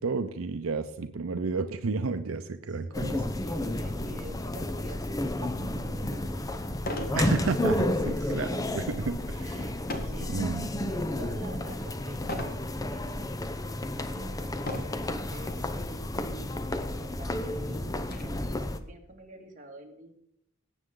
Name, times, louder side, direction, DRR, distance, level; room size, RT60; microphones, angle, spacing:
voice 1, 0.0-3.2 7.1-9.5 10.3-10.7, right 4 dB, 85° right, 9 dB, 0.6 m, -31 dB
voice 2, 2.7-6.7 6.9-7.3 8.2-8.6 9.4-13.4 13.9-16.1 16.7-20.1, equal, 40° right, 1 dB, 2.1 m, -49 dB
sound 1, 2.9-18.8, left 1 dB, 15° left, 0.7 m, -32 dB
sound 2, 5.8-5.9 6.8-7.2 7.7-8.0 9.9-10.3 10.9-11.3 12.3-12.6 13.4-13.5 14.6-15.1 16.1-16.2 16.5-16.6 17.1-18.2, left 1 dB, 45° left, 1.6 m, -36 dB
18.0 x 8.1 x 3.8 m, 0.74 s
head